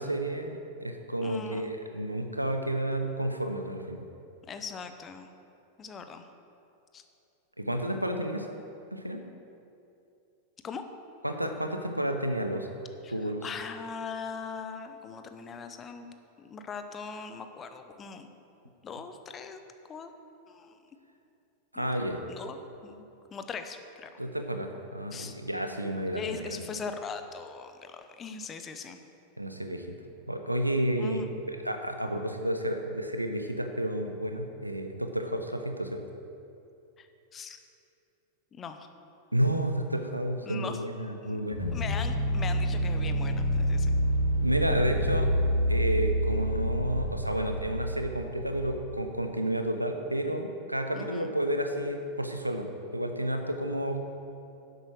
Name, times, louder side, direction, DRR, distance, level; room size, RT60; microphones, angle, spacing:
voice 1, 0.0-4.1 7.6-8.6 8.9-9.2 11.2-12.7 13.1-13.4 21.7-22.2 24.2-26.7 29.4-29.8 30.3-31.2 31.6-36.0 39.3-41.8 44.4-45.3 45.7-54.0, right 1 dB, 85° right, 5 dB, 0.9 m, -31 dB
voice 2, 1.2-1.7 4.5-5.3 5.8-6.3 6.9-7.0 10.6-10.8 13.0-16.1 16.4-18.3 18.8-19.6 19.9-20.1 20.5-21.0 21.7-21.9 22.3-23.0 23.3-24.1 25.1-25.3 26.1-29.0 31.0-31.3 37.0-37.6 38.5-38.9 40.5-40.8 41.2-44.0 50.9-51.3, left 5 dB, 25° left, 8 dB, 0.8 m, -40 dB
sound 1, 41.5-48.7, equal, 65° left, 1.8 m, -28 dB
10.5 x 7.9 x 6.3 m, 2.7 s
figure-of-eight pair, 90°, 0 cm